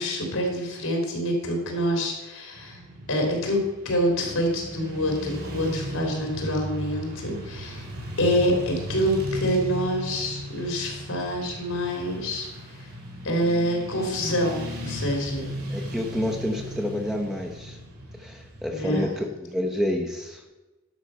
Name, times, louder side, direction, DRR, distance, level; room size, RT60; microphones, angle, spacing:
voice 1, 0.0-2.8 3.1-7.9 8.2-12.9 13.2-15.5 18.7-19.1, equal, 70° left, 2 dB, 3.2 m, -26 dB
Motorcycle / Traffic noise roadway noise, 2.5-19.2, right 1 dB, 85° right, 3.6 m, -37 dB
voice 2, 15.7-17.8 18.2-20.5, left 1 dB, ahead, 1 dB, 0.9 m, -29 dB
11.5 x 6.6 x 5.6 m, 1.1 s
head